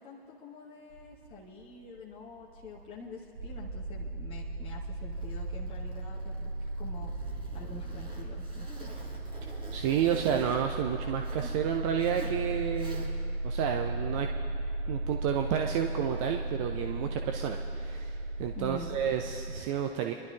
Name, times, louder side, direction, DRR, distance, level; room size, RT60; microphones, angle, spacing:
voice 1, 0.0-7.1 7.5-9.0 18.5-19.0, left 2 dB, 15° left, -4 dB, 1.0 m, -46 dB
sound 1, 0.9-19.6, right 2 dB, 65° right, 0.8 m, -36 dB
Zipper (clothing), 5.1-11.6 12.0-12.4 12.7-13.3, right 2 dB, 15° right, 1.6 m, -49 dB
voice 2, 9.4-13.1 13.4-14.3 14.9-20.1, right 9 dB, 30° right, 4 dB, 0.5 m, -31 dB
26.0 x 11.5 x 2.4 m, 2.9 s
figure-of-eight pair, 100°, 31 cm